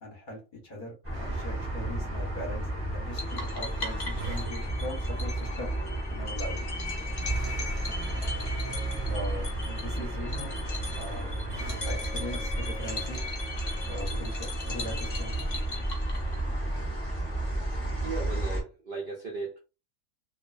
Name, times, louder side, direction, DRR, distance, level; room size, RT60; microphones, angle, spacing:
voice 1, 0.0-0.9 1.2-2.7 2.9-5.8 6.1-6.7 9.1-10.6 10.9-11.4 11.8-13.2 13.9-15.5, left 1 dB, 45° left, 0.8 m, -40 dB
sound 1, 1.0-18.6, right 1 dB, 15° right, 0.5 m, -32 dB
sound 2, 1.1-4.5 7.2-11.8, right 4 dB, 65° right, 0.8 m, -42 dB
sound 3, 3.2-16.6, left 3 dB, 85° left, 0.4 m, -40 dB
voice 2, 18.0-19.6, right 4 dB, 80° right, 0.4 m, -36 dB
2.3 x 2.3 x 2.3 m
omnidirectional pair, 1.5 m